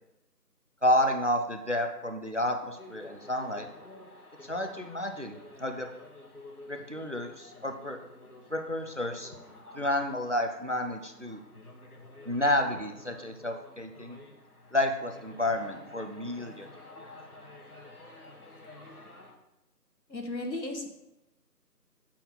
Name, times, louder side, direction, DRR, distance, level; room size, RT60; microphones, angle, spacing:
voice 1, 0.8-3.7 4.4-5.9 6.7-8.0 8.5-9.3 9.7-11.4 12.3-14.2 14.7-16.7 17.0-17.1, left 1 dB, 50° right, 6 dB, 0.5 m, -30 dB
sound 1, 2.7-19.3, left 2 dB, 60° left, 1.3 m, -51 dB
voice 2, 20.1-20.9, left 2 dB, 85° left, 3 dB, 1.4 m, -35 dB
7.2 x 4.5 x 3.8 m, 0.94 s
figure-of-eight pair, 175°, 50 cm